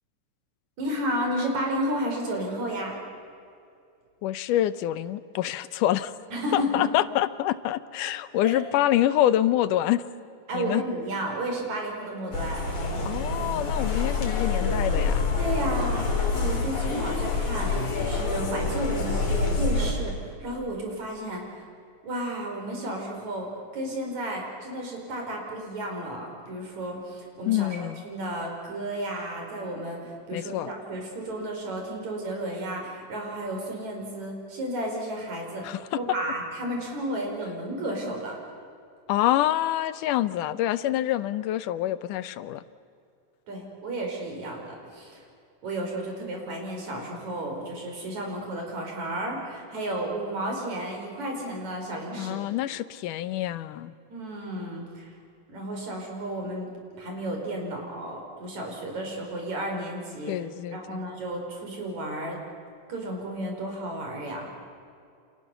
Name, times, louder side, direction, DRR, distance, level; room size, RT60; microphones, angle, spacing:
voice 1, 0.8-2.9 6.3-6.8 8.4-8.6 10.5-12.6 15.4-21.7 22.0-23.5 23.7-38.4 43.5-45.2 45.6-52.4 54.1-55.1 55.5-56.7 57.0-60.4 60.7-62.4 62.9-64.5, right 1 dB, 65° right, 1 dB, 6.2 m, -32 dB
voice 2, 4.2-6.1 6.5-10.0 10.5-10.8 13.0-15.3 27.5-28.0 30.3-30.7 35.6-36.0 39.1-42.6 52.2-53.9 60.3-61.0, left 13 dB, 85° left, 14 dB, 2.4 m, -26 dB
sound 1, 12.3-19.9, left 4 dB, 70° left, 5.3 m, -26 dB
29.5 x 28.0 x 6.9 m, 2.4 s
omnidirectional pair, 3.6 m